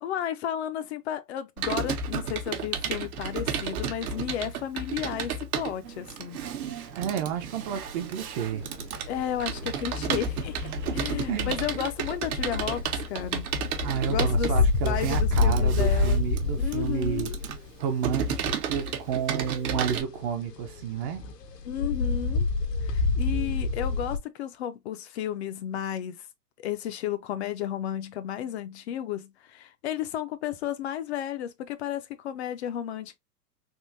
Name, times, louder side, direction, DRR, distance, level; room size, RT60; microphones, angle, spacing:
voice 1, 0.0-6.4 9.1-13.4 14.1-14.5 14.8-16.2 16.6-17.4 21.6-22.5 22.8-26.3 26.6-33.2, left 10 dB, 45° left, 0.5 m, -33 dB
Computer keyboard, 1.6-20.0, right 6 dB, 60° right, 0.9 m, -33 dB
sound 1, 5.8-11.2, right 8 dB, 90° right, 1.0 m, -46 dB
voice 2, 6.9-8.6 10.9-11.0 11.3-11.6 13.8-17.3 17.8-21.3, right 8 dB, 30° right, 0.5 m, -31 dB
sound 2, 7.3-8.1 8.4-19.2 19.5-24.2, left 3 dB, 85° left, 1.0 m, -28 dB
3.6 x 2.5 x 2.5 m
hypercardioid pair, 115°, 48 cm